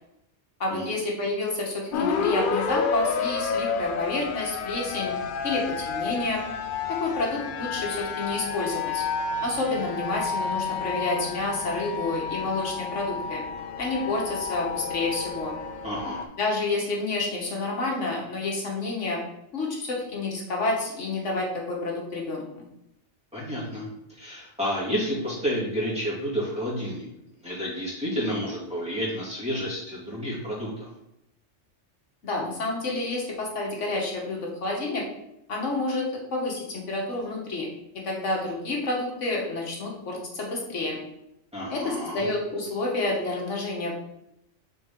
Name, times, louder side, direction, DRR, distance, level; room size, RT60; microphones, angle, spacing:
voice 1, 0.6-5.1 5.4-6.4 6.9-9.0 9.4-13.4 13.8-15.6 16.4-19.2 19.5-22.6 32.2-35.0 35.5-37.7 38.0-41.0 41.7-43.9, left 2 dB, 75° left, -1 dB, 1.5 m, -29 dB
sound 1, 1.9-16.2, left 5 dB, 60° left, 0.5 m, -30 dB
voice 2, 15.8-16.3 23.3-27.1 27.4-30.9 41.5-42.2, equal, 5° right, -8 dB, 2.2 m, -30 dB
6.6 x 4.1 x 3.6 m, 0.82 s
omnidirectional pair, 1.3 m